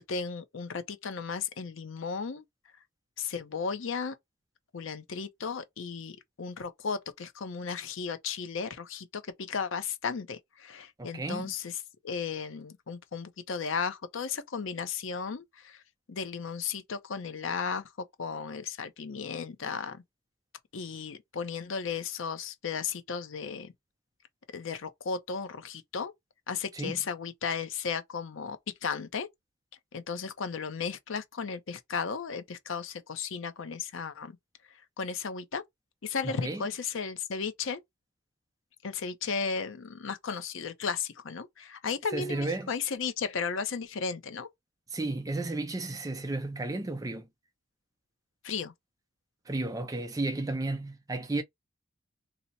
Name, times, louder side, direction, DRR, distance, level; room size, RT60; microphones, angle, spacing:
voice 1, 0.0-2.4 3.2-4.2 4.7-15.8 16.1-17.9 18.2-20.0 20.7-23.7 24.5-26.1 26.5-29.3 29.9-34.4 35.0-35.6 36.0-37.8 38.8-44.5 48.4-48.7, left 5 dB, 75° left, 0.6 m, -35 dB
voice 2, 11.0-11.5 26.7-27.0 36.2-36.6 42.1-42.7 44.9-47.3 49.5-51.4, right 2 dB, 15° right, 0.4 m, -33 dB
2.8 x 2.1 x 3.9 m
head